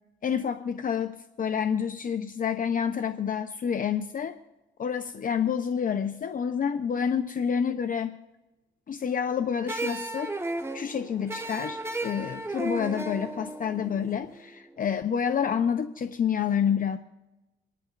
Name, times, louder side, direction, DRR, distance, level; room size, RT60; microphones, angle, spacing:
voice 1, 0.2-4.4 4.8-8.1 8.9-10.3 10.7-17.0, left 7 dB, 45° left, 9 dB, 0.7 m, -28 dB
sound 1, 9.7-14.8, right 2 dB, 15° right, 1.1 m, -34 dB
28.5 x 11.0 x 2.5 m, 1.0 s
cardioid pair, 90°, 20 cm